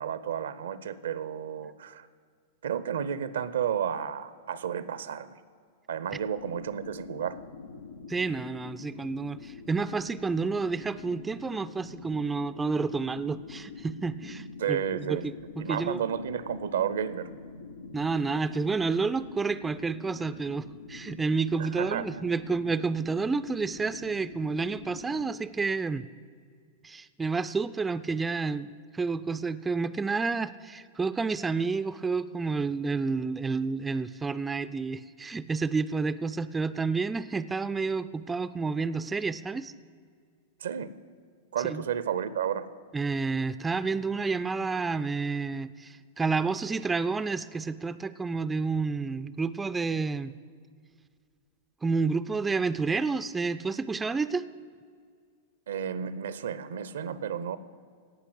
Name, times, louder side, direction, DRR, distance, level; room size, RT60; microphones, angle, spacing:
voice 1, 0.0-2.1 2.6-5.4 5.9-7.4 14.6-15.3 15.6-17.3 21.6-22.3 40.6-40.9 41.5-42.7 55.7-57.6, right 8 dB, 70° right, 15 dB, 0.6 m, -32 dB
sound 1, 6.0-25.3, left 4 dB, 85° left, 0.7 m, -45 dB
voice 2, 8.1-16.0 17.9-26.0 26.8-39.7 41.7-41.8 42.9-50.3 51.8-54.5, right 4 dB, 15° right, 12 dB, 0.4 m, -30 dB
17.0 x 5.8 x 7.9 m, 2.1 s
figure-of-eight pair, 100°, 0 cm